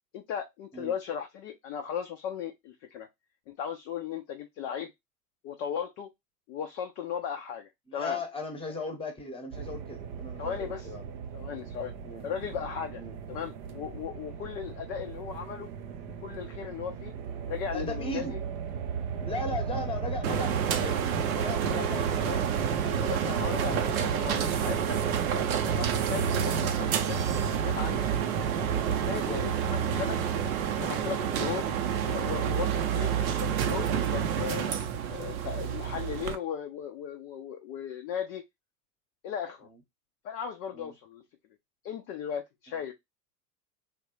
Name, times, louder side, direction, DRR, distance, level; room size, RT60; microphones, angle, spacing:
voice 1, 0.1-3.1 3.5-4.9 5.4-6.1 6.5-8.2 10.4-10.9 11.3-11.9 12.2-13.0 13.3-15.7 16.2-17.1 17.5-18.4 23.0-25.0 25.3-27.2 27.5-28.1 28.6-30.2 30.8-31.7 32.0-34.7 35.1-38.4 39.2-39.7 40.2-41.2 41.8-42.9, left 8 dB, 30° left, 0.4 m, -37 dB
voice 2, 7.9-11.1 12.0-12.2 13.0-13.2 17.7-18.3 19.2-22.5 23.4-23.9 29.1-29.4 34.2-34.3 39.7-39.8 40.7-40.9 42.7-42.8, left 2 dB, 10° left, 0.9 m, -38 dB
sound 1, 9.5-29.4, right 7 dB, 30° right, 0.4 m, -35 dB
photocopier background, 20.2-36.4, right 8 dB, 60° right, 0.7 m, -29 dB
3.3 x 2.3 x 3.0 m
figure-of-eight pair, 85°, 48 cm